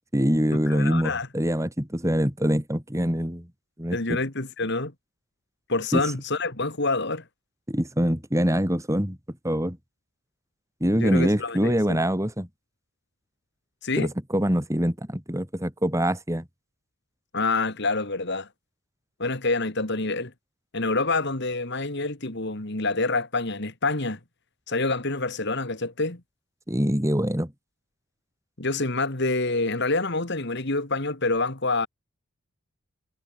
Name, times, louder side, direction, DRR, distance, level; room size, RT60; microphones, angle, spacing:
voice 1, 0.1-3.5 3.8-4.2 5.9-6.0 7.7-9.2 9.4-9.8 10.8-12.5 14.0-16.5 26.7-27.5, equal, 15° right, 3.6 m, -24 dB
voice 2, 0.7-1.3 3.9-4.9 5.7-7.2 11.0-12.0 13.8-14.1 17.3-18.5 19.2-20.3 20.7-24.2 24.7-26.2 28.6-31.9, left 3 dB, 50° left, 2.3 m, -27 dB
head